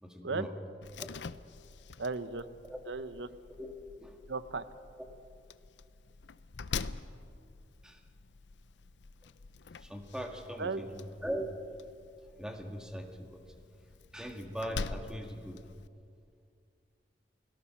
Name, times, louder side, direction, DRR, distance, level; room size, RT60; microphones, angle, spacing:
voice 1, 0.0-0.5 1.0-1.1 2.7-2.8 3.6-3.7 4.0-4.2 7.8-8.0 9.2-9.3 9.8-11.5 12.4-13.6 14.1-15.6, equal, 5° right, 3 dB, 1.9 m, -40 dB
Slam, 0.8-15.9, left 4 dB, 80° left, 0.6 m, -45 dB
voice 2, 2.0-2.4 2.9-3.3 4.3-4.6 10.6-10.8, right 4 dB, 85° right, 12 dB, 0.9 m, -35 dB
29.0 x 18.5 x 5.8 m, 2.4 s
head